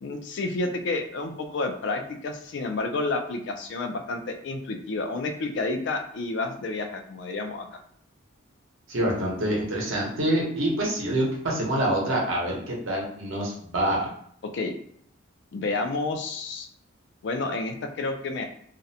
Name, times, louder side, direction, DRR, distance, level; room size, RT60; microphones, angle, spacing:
voice 1, 0.0-7.7 14.5-14.7 15.5-16.7 17.2-18.4, left 3 dB, 55° left, 5 dB, 0.3 m, -30 dB
voice 2, 8.9-14.1, right 1 dB, 75° right, -2 dB, 0.8 m, -26 dB
2.4 x 2.0 x 2.7 m, 0.65 s
head